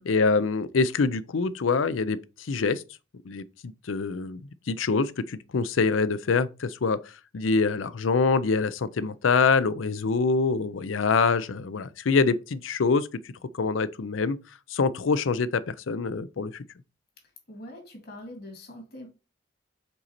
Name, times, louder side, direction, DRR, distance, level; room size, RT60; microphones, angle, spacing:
voice 1, 0.1-2.2 2.5-2.8 3.3-4.4 4.7-7.0 7.3-13.1 13.5-14.4 14.7-16.6, left 4 dB, 85° left, 0.5 m, -25 dB
voice 2, 17.5-19.1, left 1 dB, 55° left, 2.2 m, -43 dB
5.3 x 4.1 x 4.3 m
head